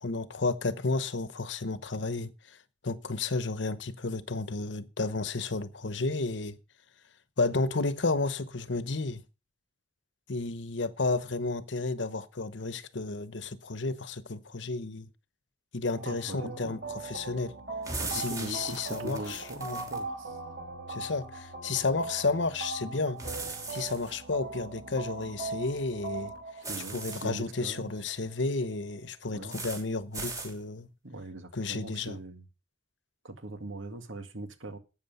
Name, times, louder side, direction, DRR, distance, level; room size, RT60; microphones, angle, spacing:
voice 1, 0.0-2.6 2.8-6.6 7.4-9.2 10.3-15.1 15.7-17.6 18.1-19.9 20.9-23.2 23.7-26.3 26.9-30.9 31.5-32.2, left 3 dB, 65° left, 1.0 m, -32 dB
sound 1, 16.0-28.9, right 3 dB, 55° right, 5.9 m, -40 dB
voice 2, 16.1-16.8 18.0-20.4 26.7-27.9 29.3-29.6 31.0-32.5 33.2-34.8, right 2 dB, 85° right, 2.1 m, -41 dB
sound 2, 17.8-20.0 23.2-24.1 26.6-27.2 29.5-29.8 30.1-30.5, right 3 dB, 20° right, 3.1 m, -38 dB
12.5 x 8.7 x 5.5 m
head